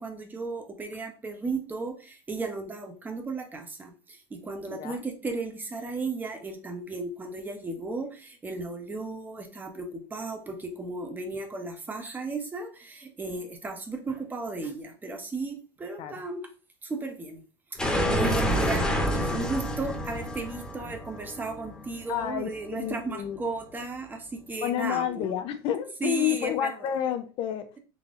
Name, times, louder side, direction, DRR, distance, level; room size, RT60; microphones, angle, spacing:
voice 1, 0.0-4.2 4.4-16.5 16.8-17.4 17.7-25.3 26.0-26.9, right 3 dB, 15° right, 0.8 m, -35 dB
voice 2, 4.7-5.0 16.0-16.1 22.1-23.4 24.6-27.7, left 10 dB, 45° left, 0.4 m, -30 dB
sound 1, 17.8-22.6, equal, 5° left, 1.0 m, -28 dB
4.1 x 2.7 x 3.5 m
supercardioid pair, 130°, 12 cm